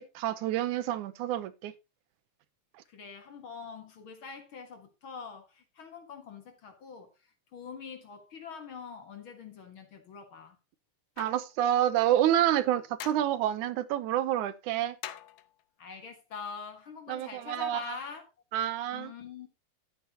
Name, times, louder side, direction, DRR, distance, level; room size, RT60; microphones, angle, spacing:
voice 1, 0.2-1.7 11.2-15.0 17.1-18.0 18.5-19.1, right 12 dB, 75° right, 2.2 m, -28 dB
voice 2, 2.9-10.6 15.8-18.3 18.9-19.5, left 5 dB, 50° left, 1.9 m, -44 dB
sound 1, 11.2-11.5 13.0-13.4 15.0-15.6, left 13 dB, 75° left, 2.0 m, -43 dB
11.5 x 9.3 x 2.9 m
omnidirectional pair, 3.7 m